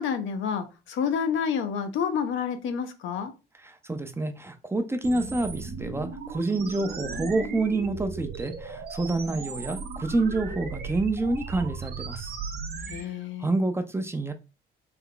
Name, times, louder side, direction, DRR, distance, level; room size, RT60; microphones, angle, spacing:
voice 1, 0.0-3.3 12.9-13.5, left 7 dB, 75° left, 8 dB, 0.6 m, -29 dB
voice 2, 3.6-12.3 12.9-13.1 13.4-14.3, right 2 dB, 10° right, 7 dB, 0.5 m, -28 dB
sound 1, 5.0-13.0, right 5 dB, 55° right, 0.7 m, -36 dB
3.4 x 2.1 x 3.8 m, 0.29 s
cardioid pair, 90°, 20 cm